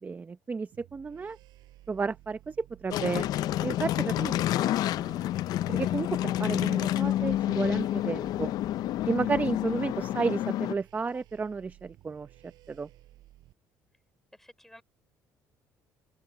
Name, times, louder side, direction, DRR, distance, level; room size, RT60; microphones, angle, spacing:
voice 1, 0.0-1.4 1.9-3.3 3.6-4.3 4.9-5.2 5.7-8.5 9.1-12.9, right 4 dB, 25° right, 0.8 m, -32 dB
sound 1, 0.7-13.5, right 16 dB, 75° right, 6.5 m, -55 dB
sound 2, 2.9-10.7, left 13 dB, 65° left, 0.5 m, -29 dB
voice 2, 14.4-14.8, left 1 dB, 5° left, 3.7 m, -53 dB
open air
cardioid pair, 105°, 7 cm